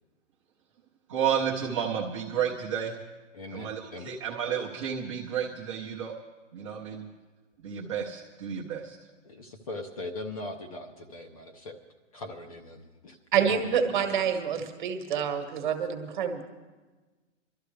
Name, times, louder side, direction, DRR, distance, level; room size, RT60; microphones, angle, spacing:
voice 1, 1.1-3.0 3.5-6.1 6.5-7.1 7.6-9.0, right 8 dB, 25° right, -3 dB, 0.8 m, -31 dB
voice 2, 3.3-4.1 9.2-11.8 12.1-14.4, left 2 dB, 30° left, 5 dB, 0.7 m, -41 dB
voice 3, 13.3-16.4, right 7 dB, 40° right, 5 dB, 1.4 m, -27 dB
23.0 x 13.0 x 3.3 m, 1.3 s
hypercardioid pair, 175°, 38 cm